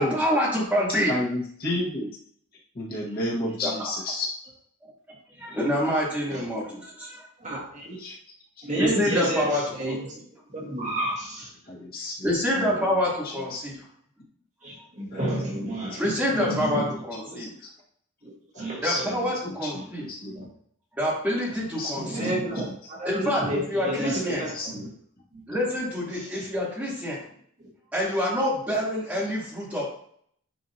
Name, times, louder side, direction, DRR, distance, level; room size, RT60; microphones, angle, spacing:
voice 1, 0.0-1.1 3.6-3.7 5.4-7.2 8.8-9.6 12.2-13.7 16.0-17.5 18.8-20.0 21.0-22.3 23.0-23.4 23.7-24.4 25.5-27.2 27.9-29.9, equal, 5° right, -7 dB, 3.0 m, -26 dB
voice 2, 1.1-2.1 2.7-4.3 8.0-8.1 11.7-13.6 15.1-15.2 15.6-16.4 16.7-16.8 17.4-17.5 18.5-20.5 21.8-22.1 24.5-24.8, left 1 dB, 40° left, -5 dB, 1.6 m, -32 dB
voice 3, 7.4-8.0 8.6-10.2 10.5-11.5 12.5-12.7 14.6-17.4 18.2-19.1 19.7-20.5 21.9-24.9 25.3-25.4 26.1-26.5 27.6-27.7, right 1 dB, 35° right, -4 dB, 1.7 m, -31 dB
10.0 x 4.9 x 2.8 m, 0.62 s
head